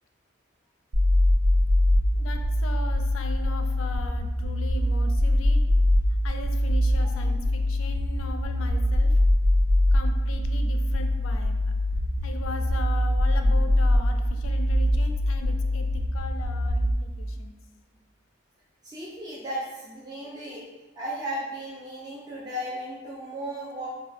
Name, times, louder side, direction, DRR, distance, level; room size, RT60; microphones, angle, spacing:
sound 1, 0.9-16.9, left 1 dB, 90° right, 0.5 m, -23 dB
voice 1, 2.1-5.7 6.2-9.1 9.9-11.6 12.2-15.9 16.1-17.5, left 3 dB, 85° left, 6 dB, 0.4 m, -39 dB
voice 2, 18.8-20.7 20.9-23.9, right 1 dB, 20° right, -7 dB, 0.4 m, -35 dB
4.2 x 2.3 x 2.4 m, 1.1 s
head